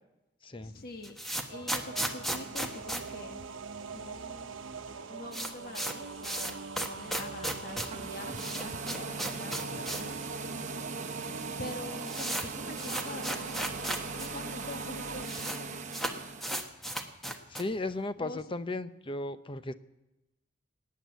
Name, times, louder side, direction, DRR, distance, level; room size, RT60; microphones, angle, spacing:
voice 1, 0.6-1.2 1.5-3.5 3.9-4.5 5.1-10.1 11.6-13.8 14.2-15.8 18.2-18.4, left 2 dB, 50° left, 6 dB, 1.4 m, -45 dB
sound 1, 0.8-4.0 4.3-4.4 4.6-4.7 5.0-10.2 10.5-10.6 11.3-11.4 11.6-14.3 14.6-14.7 14.9-15.6 15.9-17.8, right 1 dB, ahead, 1.3 m, -36 dB
sound 2, 1.5-15.2, right 4 dB, 80° right, 1.0 m, -43 dB
sound 3, 7.7-16.5, right 4 dB, 40° right, 1.0 m, -40 dB
voice 2, 17.5-19.7, left 2 dB, 25° left, 12 dB, 0.7 m, -35 dB
19.0 x 9.4 x 8.1 m, 0.98 s
head